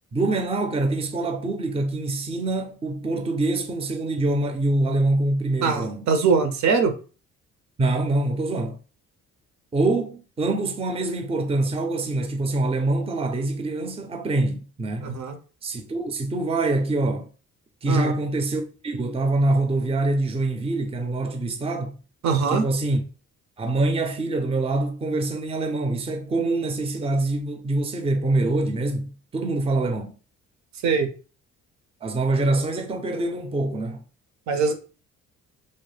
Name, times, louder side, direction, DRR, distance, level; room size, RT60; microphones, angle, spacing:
voice 1, 0.1-6.1 7.8-8.8 9.7-15.1 15.6-17.3 17.8-21.9 22.5-23.0 23.6-30.1 32.0-34.0, right 2 dB, 20° right, 0.5 m, -25 dB
voice 2, 5.6-6.9 15.0-15.4 17.9-18.1 22.2-22.6 30.8-31.1 34.5-34.7, right 5 dB, 65° right, 0.6 m, -22 dB
2.7 x 2.1 x 3.2 m
cardioid pair, 90°, 30 cm